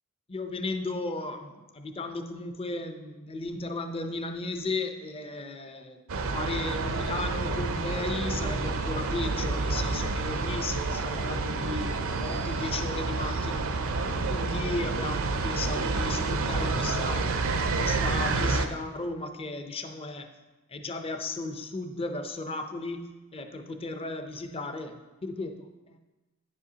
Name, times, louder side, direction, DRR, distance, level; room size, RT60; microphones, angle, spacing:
voice 1, 0.3-6.0 6.3-13.7 14.3-17.4 17.8-20.3 20.7-26.0, left 2 dB, 25° left, 6 dB, 0.6 m, -35 dB
sound 1, 6.1-18.7, right 3 dB, 65° right, 0.6 m, -29 dB
10.0 x 7.4 x 2.8 m, 1.1 s
head